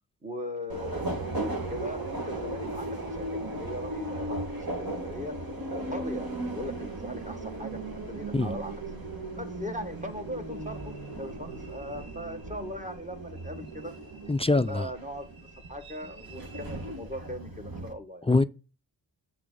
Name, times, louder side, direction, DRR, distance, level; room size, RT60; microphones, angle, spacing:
voice 1, 0.2-5.3 5.7-7.8 8.1-8.7 9.4-13.9 14.5-15.3 15.7-18.3, equal, 15° right, 1.7 m, -39 dB
Subway metro underground, 0.7-17.9, right 2 dB, 45° right, 2.0 m, -37 dB
voice 2, 14.3-14.9 18.2-18.4, left 3 dB, 15° left, 0.3 m, -23 dB
7.7 x 5.8 x 4.0 m
cardioid pair, 40°, 48 cm